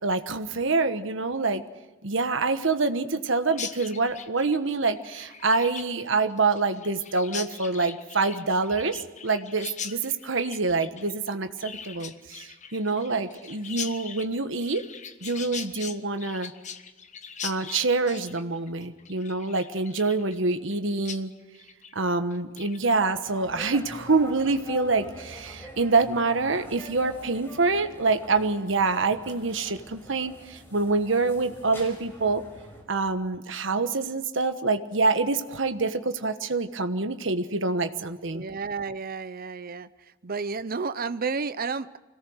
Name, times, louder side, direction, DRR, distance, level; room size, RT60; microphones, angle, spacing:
voice 1, 0.0-1.6 2.0-14.8 15.2-16.5 17.4-21.3 21.9-32.4 32.9-38.4, right 3 dB, 70° right, 8 dB, 1.3 m, -26 dB
Chirp tweet, 3.5-20.8 21.0-21.2 21.5-21.9 22.3-22.8, left 7 dB, 40° left, 1.1 m, -41 dB
sound 1, 23.2-32.8, equal, 10° left, 6.1 m, -45 dB
voice 2, 38.3-39.9 40.2-42.0, right 4 dB, 50° right, 13 dB, 0.8 m, -31 dB
25.5 x 17.5 x 6.5 m, 1.2 s
head